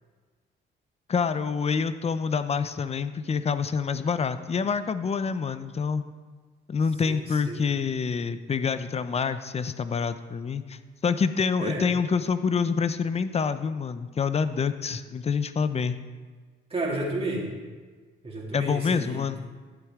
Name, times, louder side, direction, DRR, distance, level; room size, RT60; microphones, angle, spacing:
voice 1, 1.1-6.0 6.7-16.0 18.5-19.4, left 5 dB, 30° left, 12 dB, 0.6 m, -27 dB
voice 2, 7.0-7.6 11.6-11.9 16.7-17.5 18.2-19.3, right 2 dB, 30° right, -3 dB, 2.6 m, -31 dB
12.5 x 8.2 x 3.7 m, 1.4 s
cardioid pair, 90°, 20 cm